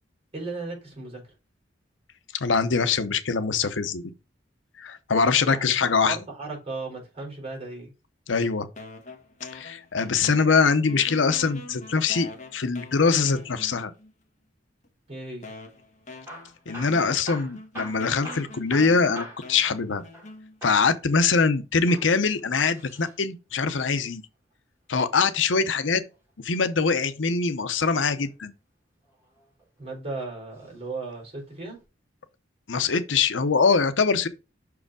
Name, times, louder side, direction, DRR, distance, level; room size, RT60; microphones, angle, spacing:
voice 1, 0.3-1.3 5.4-5.7 6.1-7.9 15.1-15.5 29.8-31.8, right 3 dB, 35° right, 4.2 m, -36 dB
voice 2, 2.3-4.1 4.8-6.2 8.3-8.7 9.5-13.9 16.7-20.0 20.6-24.2 24.9-26.0 26.4-28.5 32.7-34.3, left 5 dB, 85° left, 0.8 m, -23 dB
sound 1, 8.8-10.6 10.9-14.1 14.8-14.9 15.4-20.8, left 2 dB, 40° left, 1.5 m, -44 dB
Hammer / Drill, 16.1-20.3 20.6-20.9 21.7-23.2 24.9-26.2 27.9-28.3 29.0-29.9 30.5-30.8 31.1-31.2 31.8-31.9, equal, 15° right, 3.5 m, -43 dB
6.2 x 4.8 x 4.9 m
head